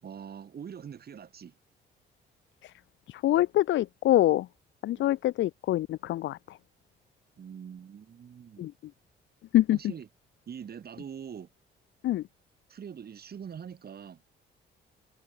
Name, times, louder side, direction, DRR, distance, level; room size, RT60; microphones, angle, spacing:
voice 1, 0.0-1.5 4.9-5.1 7.4-8.7 9.7-10.1 10.5-11.5 12.7-14.2, right 7 dB, 50° right, 5.1 m, -43 dB
voice 2, 3.1-4.5 4.8-6.4 8.6-8.7 9.5-9.8 12.0-12.2, left 14 dB, 75° left, 0.7 m, -25 dB
cardioid pair, 90°, 20 cm